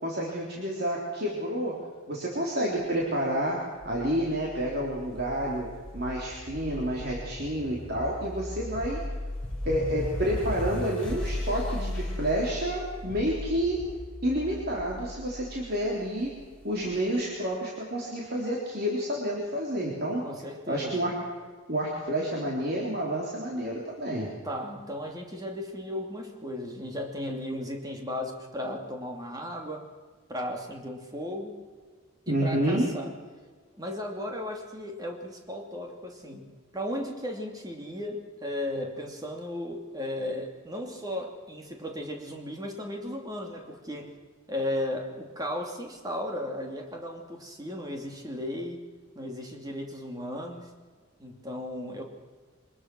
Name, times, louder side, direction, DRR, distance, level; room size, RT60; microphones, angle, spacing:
voice 1, 0.0-1.8 2.1-3.6 3.9-9.0 9.7-13.8 14.2-16.4 16.6-20.2 20.7-21.1 21.7-24.3 32.3-32.9, right 1 dB, 50° right, -3 dB, 3.6 m, -29 dB
sound 1, 3.8-17.0, left 1 dB, 5° left, 4.7 m, -37 dB
voice 2, 20.2-21.1 24.4-29.9 30.3-31.6 32.4-33.1 33.8-44.1 44.5-48.8 49.1-50.7 51.2-52.0, left 1 dB, 20° right, 2 dB, 2.7 m, -35 dB
25.0 x 20.5 x 6.3 m, 1.5 s
head